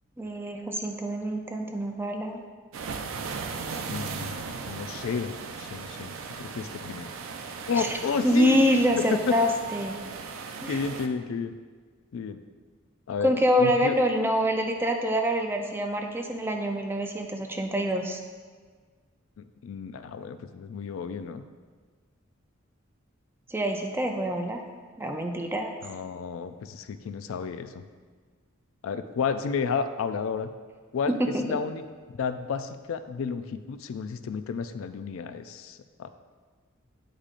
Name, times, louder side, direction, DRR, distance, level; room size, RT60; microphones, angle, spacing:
voice 1, 0.2-2.4 7.8-8.0 8.2-9.9 10.6-10.8 13.2-18.2 23.5-24.6 25.0-25.7 31.1-31.6, equal, 10° right, 3 dB, 0.4 m, -26 dB
sound 1, 2.7-11.1, right 5 dB, 85° right, 0.5 m, -37 dB
voice 2, 3.9-4.4 4.7-7.1 7.7-8.6 9.0-9.3 10.6-11.5 12.1-12.4 13.1-13.3 13.6-14.0 19.4-21.4 25.8-27.8 28.8-30.5 30.9-31.2 31.4-31.8 32.2-36.1, left 5 dB, 80° left, 10 dB, 0.3 m, -31 dB
8.8 x 4.9 x 2.5 m, 1.5 s
head